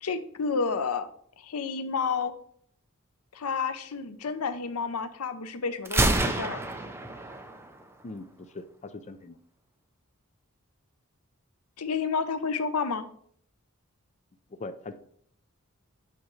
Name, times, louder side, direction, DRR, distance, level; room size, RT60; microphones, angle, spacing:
voice 1, 0.0-1.1 1.4-2.3 3.3-6.6 11.8-13.0, left 5 dB, 90° left, 11 dB, 0.6 m, -30 dB
Gunshot gunfire, 5.8-7.8, right 2 dB, 10° right, 0.6 m, -27 dB
voice 2, 8.0-9.4 14.5-14.9, left 2 dB, 30° left, 9 dB, 0.4 m, -41 dB
8.6 x 5.2 x 3.1 m, 0.62 s
head